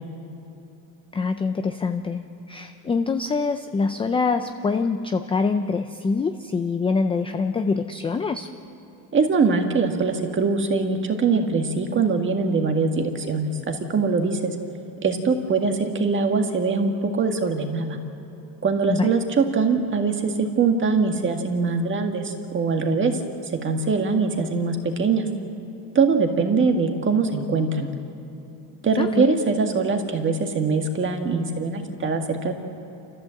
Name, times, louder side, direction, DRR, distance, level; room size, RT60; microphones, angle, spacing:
voice 1, 1.1-8.5 18.9-19.1 29.0-29.3, left 4 dB, 15° left, 7 dB, 0.4 m, -25 dB
voice 2, 9.1-14.5 15.0-18.0 18.6-23.1 23.6-25.3 26.0-27.9 28.8-32.5, right 4 dB, 25° right, 4 dB, 1.8 m, -22 dB
28.5 x 14.5 x 7.6 m, 2.9 s
cardioid pair, 160°, 43 cm